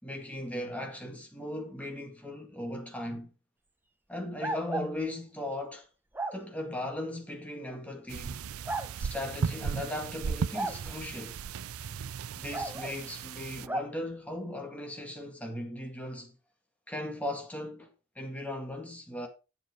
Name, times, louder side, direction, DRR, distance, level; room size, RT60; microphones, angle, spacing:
voice 1, 0.0-3.3 4.1-5.9 6.3-8.5 9.0-11.4 12.3-16.3 16.9-19.3, left 1 dB, 5° left, 2.0 m, -38 dB
sound 1, 4.4-4.9 6.1-6.4 7.7-7.8 8.7-8.9 10.5-10.8 12.5-13.0 13.7-13.9, right 2 dB, 10° right, 0.7 m, -34 dB
sound 2, 8.1-13.7, right 6 dB, 80° right, 0.5 m, -36 dB
9.3 x 7.8 x 5.0 m
head